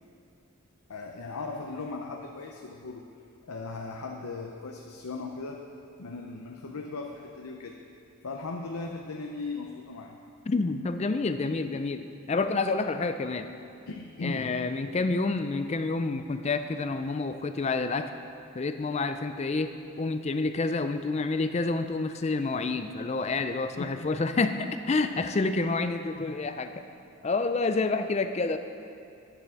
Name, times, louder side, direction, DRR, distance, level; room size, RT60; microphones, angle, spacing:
voice 1, 0.9-3.0 3.5-5.6 6.0-7.8 8.2-10.2 13.9-14.5 23.8-24.1, left 3 dB, 80° left, 1 dB, 0.7 m, -38 dB
voice 2, 10.5-13.5 14.2-18.1 18.5-19.7 20.0-26.7 27.2-28.6, left 3 dB, 30° left, 9 dB, 0.3 m, -28 dB
9.7 x 7.9 x 5.8 m, 2.6 s
head